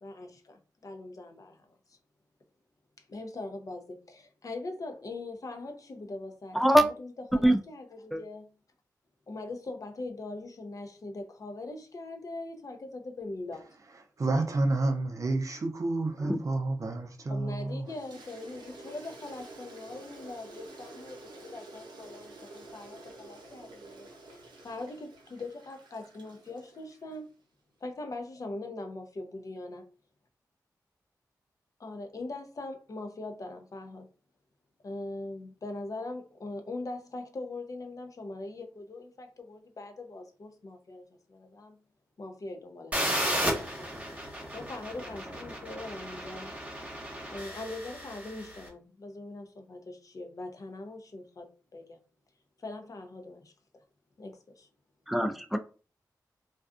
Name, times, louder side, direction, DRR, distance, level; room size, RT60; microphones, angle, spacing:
voice 1, 0.0-2.0 3.0-8.5 9.3-13.6 17.3-24.1 24.6-27.3 27.8-29.8 31.8-34.1 34.8-41.8 42.2-44.0 44.3-46.5 47.3-52.0 52.6-53.8 54.2-54.7, left 2 dB, 50° left, 0.6 m, -41 dB
voice 2, 6.5-6.9 7.4-7.6 8.1-8.2 16.2-16.4 55.1-55.6, right 1 dB, ahead, 0.5 m, -23 dB
voice 3, 14.2-17.9, right 2 dB, 45° right, 0.6 m, -29 dB
Toilet flush, 17.8-27.2, right 2 dB, 85° right, 0.7 m, -49 dB
sound 1, 42.9-48.6, equal, 20° right, 1.0 m, -34 dB
2.5 x 2.3 x 2.4 m
cardioid pair, 45°, 7 cm